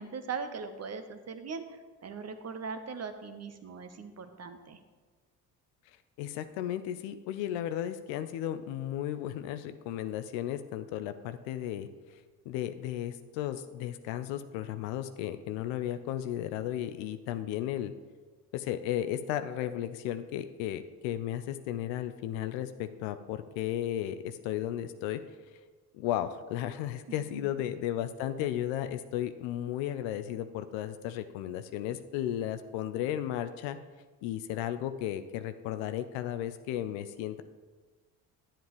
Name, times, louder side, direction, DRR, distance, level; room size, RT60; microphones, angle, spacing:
voice 1, 0.0-4.8 27.1-27.4, right 5 dB, 35° right, 8 dB, 0.9 m, -40 dB
voice 2, 6.2-11.9 12.5-17.9 18.5-25.2 25.9-33.8 34.2-37.4, left 11 dB, 70° left, 10 dB, 0.6 m, -34 dB
10.0 x 7.4 x 3.1 m, 1.4 s
hypercardioid pair, 55°, 47 cm